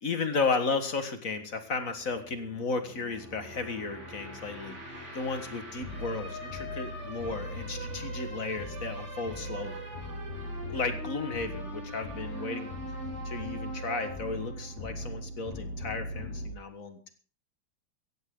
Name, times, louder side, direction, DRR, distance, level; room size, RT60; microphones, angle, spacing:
voice 1, 0.0-4.8 5.1-9.8 10.7-12.8 13.2-17.1, left 4 dB, 50° left, 8 dB, 2.1 m, -34 dB
sound 1, 1.6-16.5, equal, 40° right, 4.1 m, -39 dB
17.0 x 15.5 x 3.9 m, 0.37 s
omnidirectional pair, 1.8 m